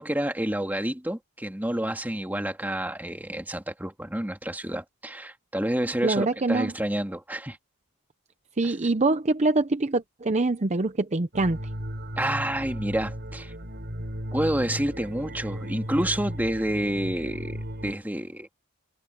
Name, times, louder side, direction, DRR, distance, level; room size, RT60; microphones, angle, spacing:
voice 1, 0.0-7.6 8.6-8.7 12.2-13.5 14.3-18.5, right 1 dB, 10° right, 2.0 m, -29 dB
voice 2, 6.0-6.7 8.6-11.6, right 2 dB, 30° right, 0.7 m, -24 dB
sound 1, 11.3-17.9, equal, 50° right, 7.6 m, -35 dB
head